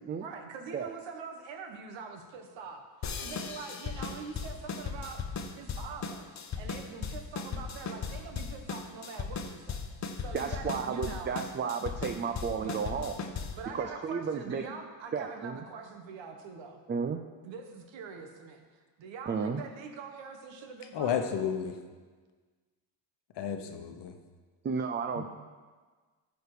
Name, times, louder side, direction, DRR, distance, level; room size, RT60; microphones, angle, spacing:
voice 1, 0.2-2.8 3.2-5.2 5.5-9.9 10.2-11.3 12.6-12.8 13.5-16.8 17.4-18.6 19.0-21.3, right 5 dB, 75° right, 4 dB, 1.4 m, -44 dB
sound 1, 3.0-13.7, left 5 dB, 40° left, 0.9 m, -37 dB
voice 2, 10.3-13.2 13.7-14.6 15.1-15.6 16.9-17.2 19.3-19.6 24.6-25.3, right 6 dB, 25° right, 6 dB, 0.5 m, -33 dB
voice 3, 20.9-21.8 23.4-24.1 25.2-25.3, left 8 dB, 65° left, 6 dB, 1.1 m, -32 dB
13.5 x 5.0 x 4.9 m, 1.4 s
cardioid pair, 110°, 45 cm